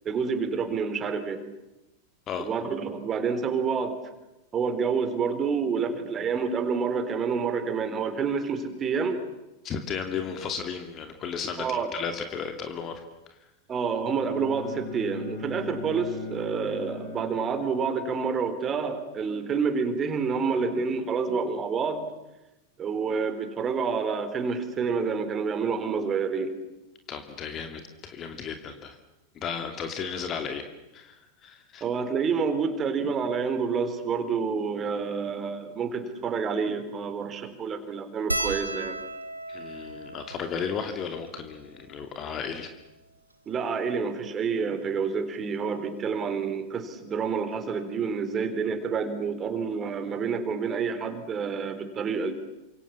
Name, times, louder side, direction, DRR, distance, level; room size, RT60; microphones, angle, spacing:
voice 1, 0.0-1.4 2.4-3.9 4.5-9.2 11.6-11.9 13.7-22.0 22.8-26.5 31.8-39.0 43.5-52.3, right 5 dB, 25° right, 9 dB, 4.1 m, -28 dB
voice 2, 9.6-13.0 13.3-13.4 27.1-29.0 29.3-30.6 30.9-31.8 39.5-42.7, left 6 dB, 30° left, 6 dB, 2.7 m, -34 dB
Bowed string instrument, 14.0-18.1, left 4 dB, 55° left, 7.6 m, -40 dB
sound 1, 38.3-42.9 43.6-43.7 43.9-44.1 45.4-45.6 47.1-47.2 47.4-47.6, right 2 dB, 85° right, 2.3 m, -36 dB
28.5 x 26.5 x 7.3 m, 0.98 s
figure-of-eight pair, 90°, 0 cm